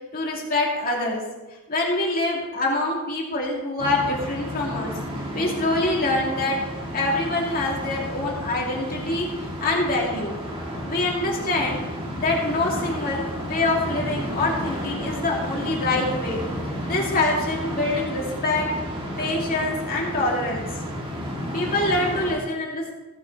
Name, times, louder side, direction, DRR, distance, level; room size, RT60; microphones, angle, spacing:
voice 1, 0.1-1.2 1.7-4.9 5.3-6.6 6.9-9.3 9.6-10.4 10.8-11.8 12.2-16.4 16.9-18.7 19.2-20.7 21.5-22.9, left 2 dB, 45° left, -2 dB, 2.7 m, -25 dB
sound 1, 3.8-22.4, equal, 25° right, 1.8 m, -32 dB
15.5 x 6.5 x 4.7 m, 1.1 s
head